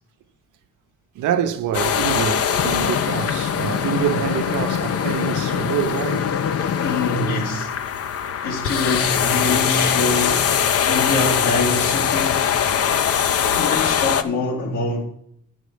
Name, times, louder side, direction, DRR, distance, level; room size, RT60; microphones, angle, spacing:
voice 1, 1.1-6.3 10.7-11.1, right 10 dB, 85° right, 0.9 m, -26 dB
sound 1, 1.7-14.2, left 8 dB, 50° left, 0.7 m, -22 dB
voice 2, 6.6-7.7 8.4-10.6 10.8-12.5 13.5-15.0, left 2 dB, 80° left, 2.7 m, -24 dB
9.2 x 7.4 x 5.0 m
cardioid pair, 90°, 30 cm